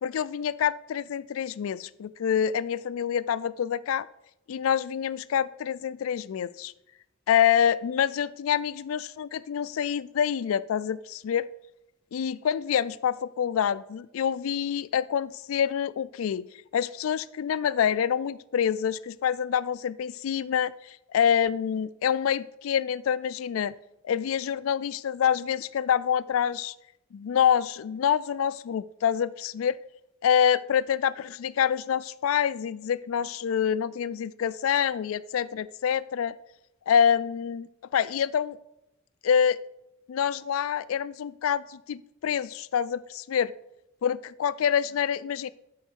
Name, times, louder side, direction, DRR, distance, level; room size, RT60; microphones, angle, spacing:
voice 1, 0.0-4.1 4.5-6.7 7.3-11.5 12.1-16.5 16.7-23.7 24.0-26.7 27.1-29.8 30.2-36.4 36.9-38.6 39.2-39.6 40.1-43.5 44.0-45.5, left 8 dB, 80° left, 18 dB, 0.3 m, -26 dB
11.0 x 4.5 x 4.5 m, 0.85 s
head